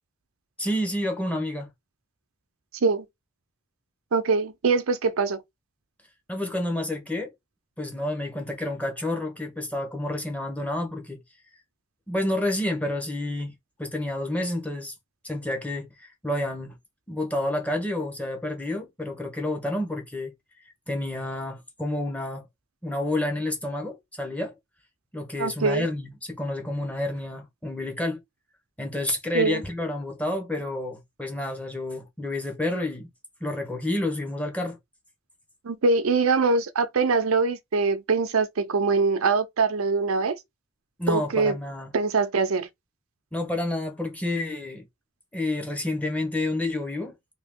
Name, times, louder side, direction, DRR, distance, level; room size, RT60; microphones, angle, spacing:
voice 1, 0.6-1.7 6.3-7.3 7.8-11.2 12.1-13.5 13.8-14.9 15.2-16.8 17.1-20.3 20.9-22.4 22.8-24.6 25.1-28.2 28.8-33.1 33.4-34.8 41.0-41.9 43.3-44.9 45.3-47.1, left 1 dB, 5° left, 0.8 m, -29 dB
voice 2, 4.1-5.4 25.4-25.8 29.3-29.6 35.6-40.4 41.1-41.6 41.9-42.7, right 4 dB, 85° right, 0.6 m, -23 dB
2.9 x 2.8 x 3.5 m
head